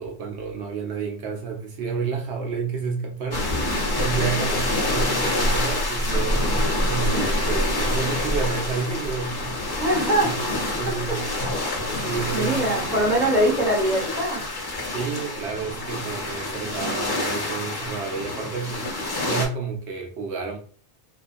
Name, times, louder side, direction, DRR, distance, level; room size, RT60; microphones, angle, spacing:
voice 1, 0.0-3.5 4.0-9.6 10.2-11.2 11.7-13.8 14.9-18.9 19.3-20.6, right 5 dB, 75° right, 0.9 m, -30 dB
sound 1, 3.3-19.5, left 1 dB, 30° left, 0.5 m, -26 dB
voice 2, 9.8-10.3 12.3-14.4, right 1 dB, ahead, 1.0 m, -22 dB
2.7 x 2.3 x 2.4 m
omnidirectional pair, 1.2 m